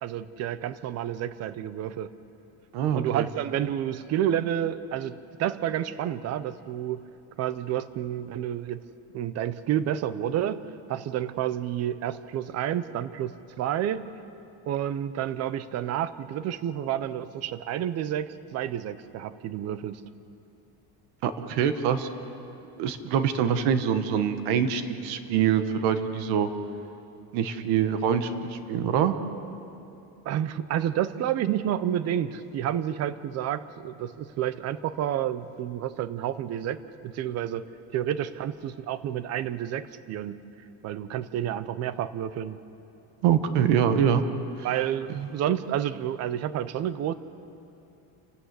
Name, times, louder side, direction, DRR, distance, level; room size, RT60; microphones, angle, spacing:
voice 1, 0.0-2.1 2.9-7.1 7.4-8.8 9.1-14.1 14.7-20.0 30.2-37.6 37.9-40.4 40.8-42.6 44.6-47.1, right 10 dB, 40° right, 15 dB, 0.7 m, -30 dB
voice 2, 2.7-3.3 21.2-22.1 22.8-26.5 27.3-29.1 43.2-44.2 44.6-44.7 45.1-45.3, right 8 dB, 70° right, 10 dB, 1.4 m, -24 dB
29.0 x 12.5 x 8.2 m, 2.8 s
cardioid pair, 175°, 40 cm